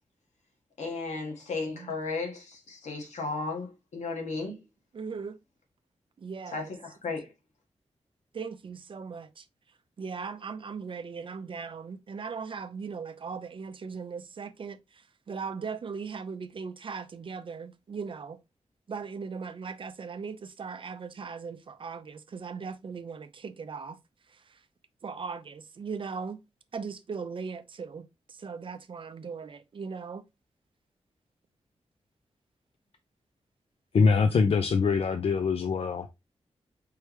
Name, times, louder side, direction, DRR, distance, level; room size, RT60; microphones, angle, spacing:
voice 1, 0.8-4.6 6.5-7.3, left 3 dB, 85° left, 1.6 m, -34 dB
voice 2, 4.9-5.4 6.2-6.7 8.3-9.4 10.0-14.8 15.3-18.4 18.9-24.0 25.0-26.4 26.7-30.2, right 5 dB, 45° right, 0.5 m, -38 dB
voice 3, 33.9-36.1, left 5 dB, 55° left, 0.4 m, -23 dB
4.6 x 3.3 x 3.1 m
wide cardioid pair, 155°, 12 cm